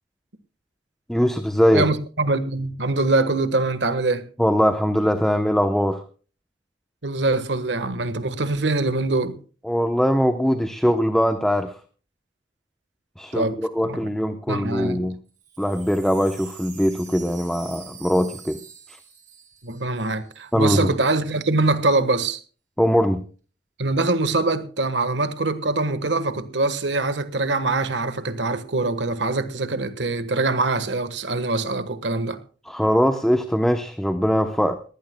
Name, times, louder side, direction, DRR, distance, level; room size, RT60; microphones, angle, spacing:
voice 1, 1.1-1.9 4.4-6.0 9.6-11.8 13.2-15.2 15.6-18.6 20.5-20.9 22.8-23.2 32.6-34.8, equal, 5° left, 0.8 m, -21 dB
voice 2, 1.7-4.2 7.0-9.4 13.3-13.6 13.8-14.1 14.5-15.0 19.6-22.4 23.8-32.4, right 2 dB, 70° right, 1.3 m, -23 dB
Wind chime, 15.3-20.5 20.8-20.9 21.1-21.5, right 7 dB, 45° right, 6.0 m, -45 dB
22.0 x 15.5 x 2.2 m
head